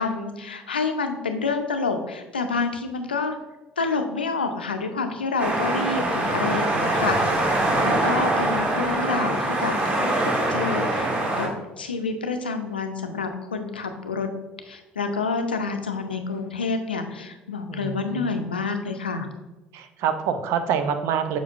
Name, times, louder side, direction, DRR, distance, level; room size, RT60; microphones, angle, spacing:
voice 1, 0.0-3.4 3.8-7.5 7.8-11.5 11.8-14.3 14.7-19.3, left 4 dB, 85° left, 6 dB, 0.5 m, -28 dB
sound 1, 5.4-11.5, right 1 dB, 25° right, 1.6 m, -23 dB
voice 2, 5.8-6.1 8.0-8.4 17.7-18.3 19.7-21.4, right 7 dB, 60° right, 8 dB, 0.6 m, -27 dB
7.2 x 5.1 x 2.5 m, 1.1 s
figure-of-eight pair, 60°, 5 cm